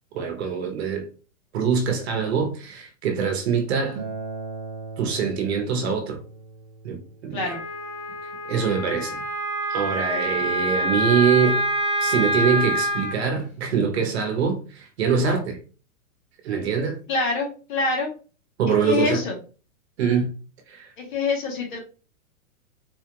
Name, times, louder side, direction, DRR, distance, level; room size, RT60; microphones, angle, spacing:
voice 1, 0.1-1.1 1.5-4.0 5.0-6.2 6.8-7.5 8.4-9.2 9.7-11.6 12.0-15.6 16.4-17.0 18.6-19.2 20.0-20.3 20.7-20.9, right 6 dB, 50° right, 1.1 m, -24 dB
Acoustic guitar, 3.9-9.1, right 3 dB, 25° right, 0.9 m, -39 dB
Wind instrument woodwind instrument, 7.4-13.1, right 1 dB, 75° left, 1.5 m, -26 dB
voice 2, 17.1-18.1 18.8-19.4 21.0-21.8, left 3 dB, 35° left, 1.0 m, -25 dB
4.3 x 2.4 x 2.9 m
supercardioid pair, 170°, 42 cm